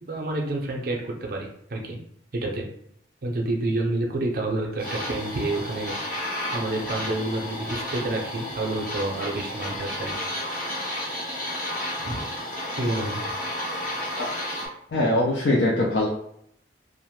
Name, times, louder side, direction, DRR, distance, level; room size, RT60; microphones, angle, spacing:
voice 1, 0.0-2.0 2.3-2.7 3.2-5.9 6.5-10.3 10.5-10.6 12.0-12.3 12.8-13.2, right 2 dB, 50° right, 0 dB, 0.5 m, -29 dB
sound 1, 4.8-14.7, left 1 dB, 45° left, 1.0 m, -32 dB
voice 2, 14.9-16.1, left 1 dB, 65° left, -3 dB, 0.4 m, -22 dB
2.4 x 2.1 x 3.0 m, 0.71 s
head